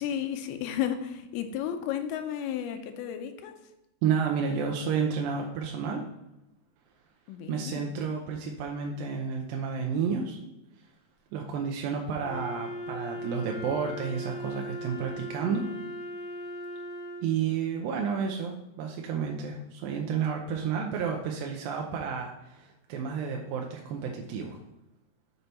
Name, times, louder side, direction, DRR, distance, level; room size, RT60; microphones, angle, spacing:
voice 1, 0.0-3.6 7.3-7.9, left 9 dB, 85° left, 8 dB, 2.6 m, -33 dB
voice 2, 4.0-6.0 7.5-10.4 11.3-15.6 17.2-24.6, right 6 dB, 80° right, 1 dB, 2.2 m, -31 dB
Wind instrument woodwind instrument, 12.2-17.4, equal, 70° left, 2.9 m, -38 dB
6.8 x 4.4 x 4.1 m, 0.92 s
omnidirectional pair, 4.4 m